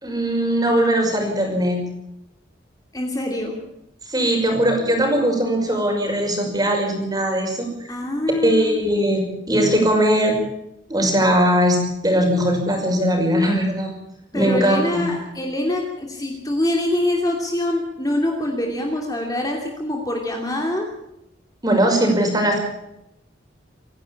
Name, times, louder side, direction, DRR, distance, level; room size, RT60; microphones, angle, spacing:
voice 1, 0.0-1.8 4.1-7.7 8.4-10.4 10.9-13.9 14.3-15.1 21.6-22.6, equal, 20° right, 2 dB, 5.8 m, -20 dB
voice 2, 2.9-3.6 7.9-8.8 14.3-20.9, left 1 dB, 20° left, 1 dB, 2.9 m, -24 dB
26.5 x 11.5 x 8.5 m, 0.83 s
head